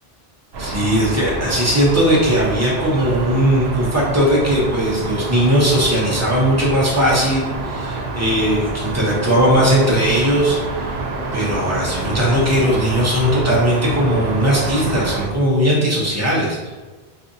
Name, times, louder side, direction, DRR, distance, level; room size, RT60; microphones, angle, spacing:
sound 1, 0.5-15.3, right 2 dB, 85° right, 0.9 m, -27 dB
voice 1, 0.6-11.0 11.3-16.7, equal, 15° right, -6 dB, 0.8 m, -18 dB
3.8 x 2.6 x 2.7 m, 1.3 s
omnidirectional pair, 1.1 m